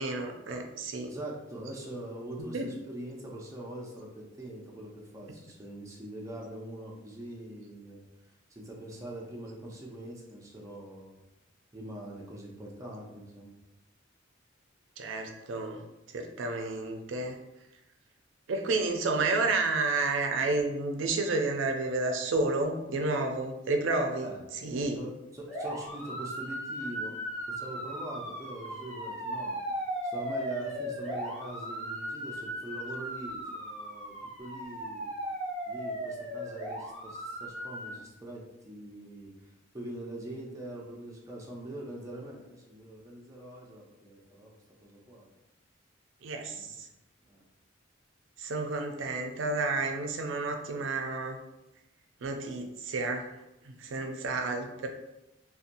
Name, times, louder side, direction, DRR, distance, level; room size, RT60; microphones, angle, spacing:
voice 1, 0.0-1.1 2.4-2.7 15.0-15.8 16.1-17.4 18.5-24.3 24.6-25.0 46.2-46.9 48.4-51.4 52.2-53.3 53.6-54.9, right 3 dB, 75° right, 4 dB, 0.4 m, -31 dB
voice 2, 1.1-8.0 8.5-11.2 11.7-13.5 24.2-24.4 24.9-27.1 27.5-35.1 35.7-39.5 39.7-45.3 46.4-46.7 47.3-47.4, right 1 dB, 15° right, -3 dB, 0.5 m, -43 dB
sound 1, 25.5-37.9, equal, 5° left, 1.1 m, -37 dB
2.7 x 2.2 x 2.5 m, 0.92 s
head